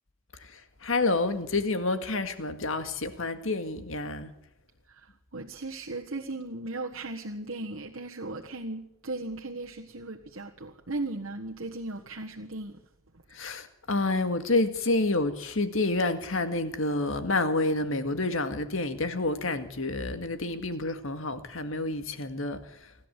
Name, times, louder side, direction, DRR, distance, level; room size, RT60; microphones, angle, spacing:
voice 1, 0.4-4.3 13.3-22.6, left 2 dB, 65° left, 8 dB, 2.0 m, -29 dB
voice 2, 5.3-12.8, right 2 dB, 65° right, -1 dB, 1.5 m, -37 dB
26.0 x 12.5 x 8.3 m, 0.83 s
head